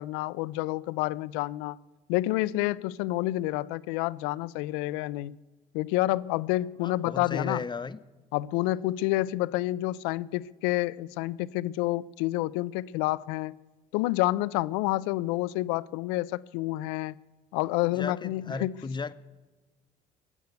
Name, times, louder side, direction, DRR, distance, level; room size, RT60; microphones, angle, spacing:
voice 1, 0.0-1.8 2.1-5.4 5.7-7.6 8.3-13.6 13.9-17.2 17.5-18.7, left 17 dB, 85° left, 0.5 m, -29 dB
voice 2, 6.8-8.0 17.9-19.1, left 4 dB, 25° left, 0.7 m, -35 dB
20.0 x 8.1 x 8.1 m
supercardioid pair, 70°, 19 cm